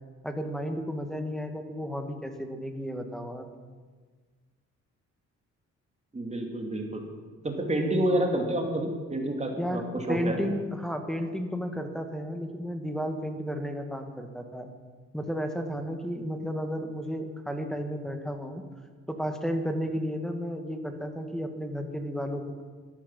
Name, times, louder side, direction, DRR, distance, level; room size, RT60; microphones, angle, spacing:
voice 1, 0.2-3.5 9.6-14.7 15.1-18.6 19.1-22.6, equal, ahead, 5 dB, 1.9 m, -33 dB
voice 2, 6.1-7.0 7.4-10.4, right 1 dB, 20° right, 2 dB, 3.1 m, -29 dB
13.0 x 11.5 x 7.7 m, 1.5 s
cardioid pair, 90°, 30 cm